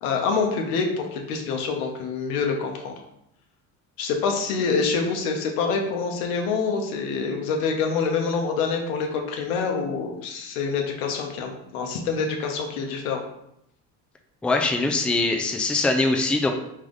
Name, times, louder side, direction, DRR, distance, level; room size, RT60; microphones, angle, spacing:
voice 1, 0.0-2.9 4.0-13.2, left 5 dB, 90° left, 3 dB, 0.9 m, -26 dB
voice 2, 14.4-16.5, left 3 dB, 5° left, 3 dB, 0.4 m, -22 dB
3.5 x 3.2 x 3.8 m, 0.78 s
supercardioid pair, 90°, 42 cm